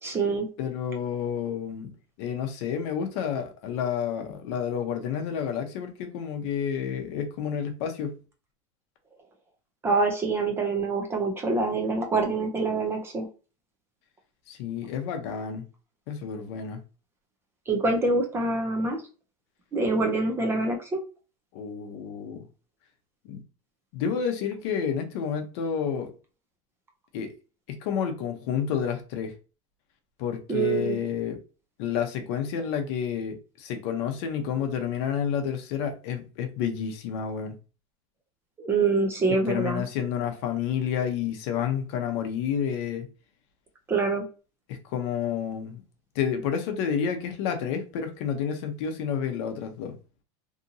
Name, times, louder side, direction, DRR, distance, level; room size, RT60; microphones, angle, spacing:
voice 1, 0.0-0.5 9.8-13.3 17.7-19.0 19.7-21.0 30.5-31.0 38.6-39.8 43.9-44.2, right 3 dB, 15° right, 0.4 m, -25 dB
voice 2, 0.6-1.9 2.2-8.1 14.5-15.6 16.1-16.8 21.5-22.4 23.2-23.4 23.9-26.1 27.1-27.3 27.7-29.3 30.2-31.4 31.8-37.5 39.5-43.1 44.7-45.8 46.1-49.9, left 8 dB, 55° left, 0.7 m, -30 dB
2.8 x 2.5 x 2.6 m
supercardioid pair, 160°, 17 cm